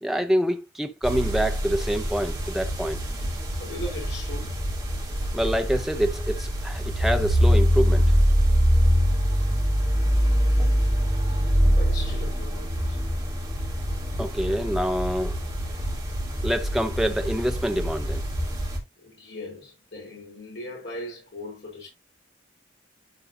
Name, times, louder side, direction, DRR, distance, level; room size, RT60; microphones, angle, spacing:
voice 1, 0.0-3.3 5.3-8.0 14.2-15.4 16.4-18.2, equal, ahead, 0.8 m, -26 dB
sound 1, 1.0-18.8, equal, 20° right, 3.0 m, -24 dB
voice 2, 3.6-4.6 11.3-11.5 11.8-13.0 19.0-21.9, left 1 dB, 60° left, 4.0 m, -39 dB
11.0 x 4.8 x 2.7 m
head